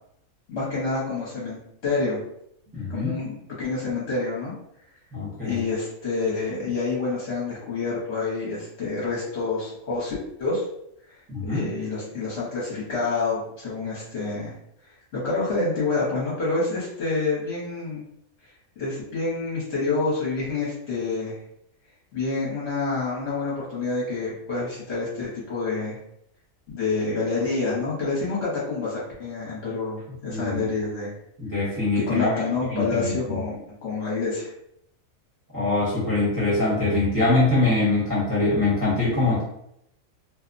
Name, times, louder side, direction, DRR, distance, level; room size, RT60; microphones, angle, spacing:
voice 1, 0.5-2.2 2.9-4.5 5.4-10.6 11.1-14.5 15.1-18.0 18.8-21.4 22.1-26.0 26.7-31.1 32.1-33.6 33.8-34.5, left 3 dB, 55° left, -7 dB, 1.1 m, -28 dB
voice 2, 2.7-3.1 5.1-5.6 11.3-11.7 30.3-30.6 31.4-32.4 32.7-33.4 35.5-39.4, left 2 dB, 15° right, -9 dB, 0.8 m, -23 dB
2.8 x 2.0 x 2.5 m, 0.76 s
omnidirectional pair, 1.4 m